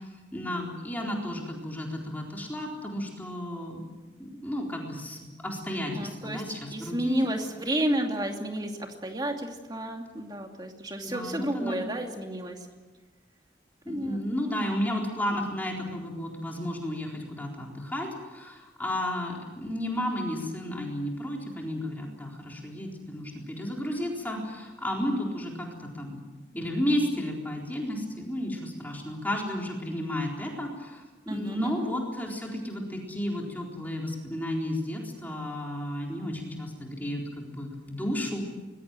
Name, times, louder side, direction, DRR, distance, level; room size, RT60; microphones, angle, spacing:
voice 1, 0.0-3.9 4.2-7.3 11.0-11.9 13.8-26.2 26.5-38.4, left 1 dB, 10° left, -1 dB, 4.0 m, -33 dB
voice 2, 5.9-6.4 6.7-12.6 13.9-14.2 31.3-31.7, right 1 dB, 20° right, 3 dB, 2.6 m, -31 dB
25.0 x 21.5 x 7.6 m, 1.3 s
head